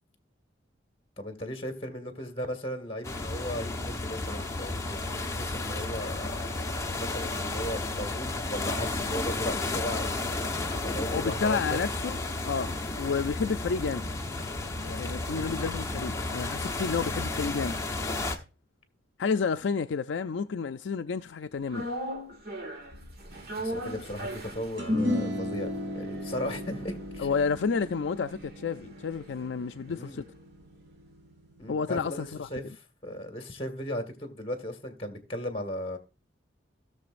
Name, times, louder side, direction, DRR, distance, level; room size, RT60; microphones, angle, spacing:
voice 1, 1.2-6.6 7.0-10.1 10.4-11.8 15.3-15.5 23.6-27.3 29.9-30.2 31.6-36.0, equal, 30° left, 1.8 m, -37 dB
sound 1, 3.0-18.4, left 2 dB, 15° left, 1.1 m, -32 dB
voice 2, 11.1-12.2 12.4-14.0 14.8-17.8 19.2-21.9 27.2-30.2 31.7-32.5, left 5 dB, 70° left, 0.4 m, -30 dB
sound 2, 21.7-30.0 30.3-30.4, right 1 dB, 55° right, 1.7 m, -40 dB
sound 3, 24.8-31.3, left 1 dB, 85° right, 3.1 m, -34 dB
18.0 x 6.9 x 2.5 m
head